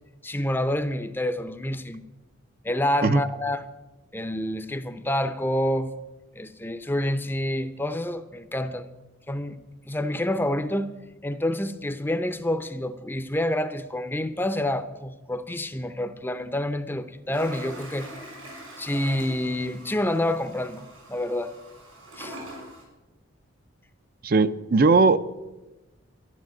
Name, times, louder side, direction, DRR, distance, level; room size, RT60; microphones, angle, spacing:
voice 1, 0.2-2.0 2.6-3.6 4.1-5.9 6.4-8.9 9.3-9.6 9.9-10.9 11.2-18.1 18.8-21.6 22.2-22.4, left 1 dB, 10° left, 0.6 m, -28 dB
Toilet flush, 17.3-22.8, right 1 dB, 85° right, 6.6 m, -43 dB
voice 2, 24.2-25.4, right 3 dB, 45° right, 0.5 m, -19 dB
13.0 x 11.5 x 7.6 m
head